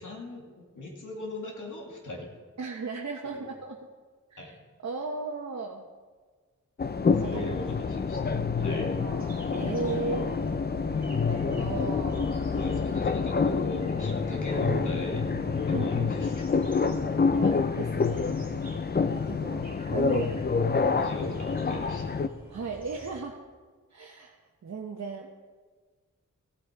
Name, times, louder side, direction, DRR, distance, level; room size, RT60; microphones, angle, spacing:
voice 1, 0.0-2.3 3.3-3.5 4.4-4.6 7.1-8.9 12.6-15.3 15.6-16.9 21.0-22.1, left 1 dB, 85° left, -1 dB, 2.5 m, -39 dB
voice 2, 2.6-3.8 4.3-4.5 4.8-5.9 7.2-7.4 8.6-10.3 11.3-12.3 12.6-12.8 15.7-16.1 17.3-18.4 19.1-19.6 19.9-20.3 22.5-23.4 23.9-24.4 24.6-25.3, right 4 dB, 60° right, 0 dB, 1.0 m, -36 dB
sound 1, 6.8-22.3, left 5 dB, 35° left, 0.5 m, -27 dB
sound 2, 9.1-23.2, right 2 dB, 30° right, 2.3 m, -49 dB
15.5 x 8.5 x 4.6 m, 1.4 s
wide cardioid pair, 110°, 30 cm